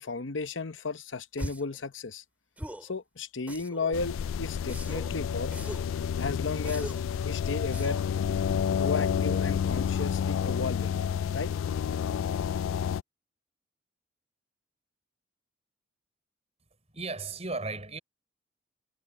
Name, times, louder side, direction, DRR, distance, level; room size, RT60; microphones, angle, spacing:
voice 1, 0.0-2.2 2.8-5.5 6.2-8.0 8.8-10.9 11.3-11.5, left 4 dB, 70° left, 0.9 m, -34 dB
sound 1, 1.4-1.8 2.6-2.9 3.5-4.0 4.7-5.1 5.5-5.9 6.6-7.1 7.7-8.1, equal, 10° right, 2.4 m, -40 dB
sound 2, 3.9-13.0, left 8 dB, 90° left, 0.3 m, -29 dB
voice 2, 16.9-18.0, right 3 dB, 35° right, 4.5 m, -35 dB
head